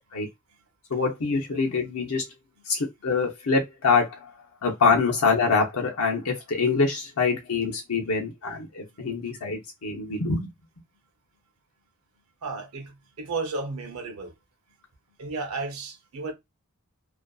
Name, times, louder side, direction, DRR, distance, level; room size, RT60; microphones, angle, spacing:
voice 1, 0.9-2.2 2.7-4.3 4.6-10.5, left 4 dB, 75° left, 0.8 m, -25 dB
voice 2, 12.4-14.3 15.2-16.3, right 3 dB, 70° right, 0.7 m, -33 dB
2.5 x 2.5 x 2.3 m
head